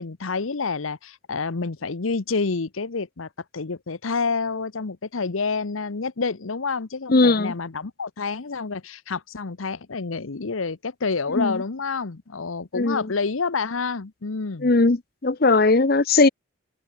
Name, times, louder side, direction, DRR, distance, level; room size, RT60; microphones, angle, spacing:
voice 1, 0.0-3.3 3.5-14.7, left 4 dB, 85° left, 0.9 m, -28 dB
voice 2, 7.1-7.5 11.4-11.6 12.8-13.1 14.6-15.0 15.2-16.3, left 3 dB, 50° left, 0.8 m, -18 dB
open air
head